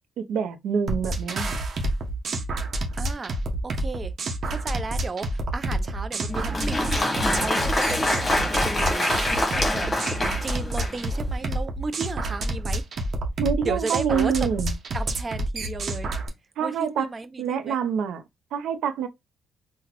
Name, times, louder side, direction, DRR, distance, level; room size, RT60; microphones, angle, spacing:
voice 1, 0.2-1.6 13.4-14.7 16.6-17.1 17.4-18.2 18.5-19.1, right 7 dB, 80° right, 0.5 m, -26 dB
sound 1, 0.9-16.3, right 2 dB, 55° right, 0.9 m, -28 dB
voice 2, 3.0-4.1 4.4-9.9 10.2-12.8 13.6-14.5 14.9-16.1 16.6-17.8, right 3 dB, 30° right, 0.5 m, -34 dB
Applause, 6.3-11.2, left 1 dB, 30° left, 1.1 m, -25 dB
3.9 x 2.1 x 2.9 m
cardioid pair, 90°, 0 cm